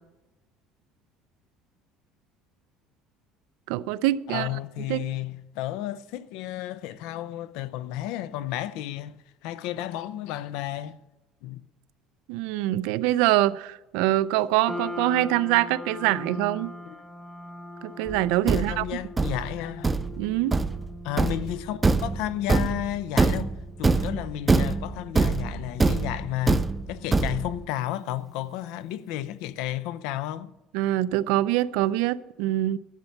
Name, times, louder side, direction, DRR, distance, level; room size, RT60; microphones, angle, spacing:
voice 1, 3.7-4.5 4.9-5.0 12.3-16.7 17.8-18.8 20.2-20.6 30.7-32.8, right 15 dB, 80° right, 0.5 m, -24 dB
voice 2, 4.3-11.0 11.4-11.6 16.9-17.0 18.5-19.9 21.0-30.5, left 13 dB, 70° left, 0.6 m, -32 dB
sound 1, 14.7-29.1, left 2 dB, 10° left, 0.9 m, -42 dB
Thump thud, 18.1-27.7, right 3 dB, 15° right, 0.4 m, -24 dB
12.0 x 7.9 x 7.2 m
cardioid pair, 165°, 0 cm